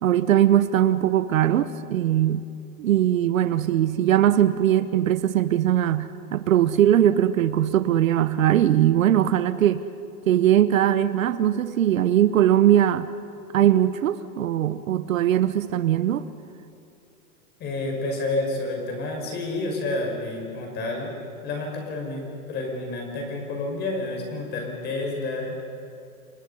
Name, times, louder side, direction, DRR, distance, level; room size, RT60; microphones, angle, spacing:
voice 1, 0.0-2.4 2.8-9.8 10.3-13.1 13.5-16.3, right 11 dB, 60° right, 13 dB, 1.1 m, -20 dB
voice 2, 17.6-21.1 21.4-25.6, left 2 dB, 20° left, 2 dB, 5.6 m, -29 dB
30.0 x 24.5 x 5.6 m, 2.5 s
hypercardioid pair, 155°, 44 cm